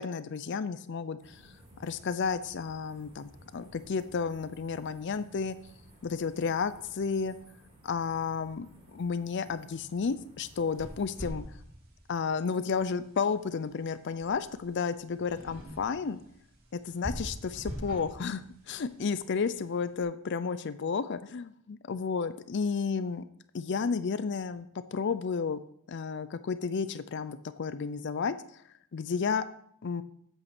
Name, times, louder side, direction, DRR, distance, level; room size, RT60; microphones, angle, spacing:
voice 1, 0.0-1.5 1.8-5.6 6.0-7.4 7.8-11.4 12.1-16.2 16.7-23.3 23.5-25.6 25.9-28.6 28.9-29.4 29.8-30.0, left 5 dB, 50° left, 14 dB, 0.4 m, -32 dB
sound 1, 1.2-11.2, right 1 dB, 30° right, 5.2 m, -56 dB
sound 2, 10.5-19.9, equal, 45° right, 2.9 m, -45 dB
8.8 x 8.0 x 5.9 m, 0.69 s
head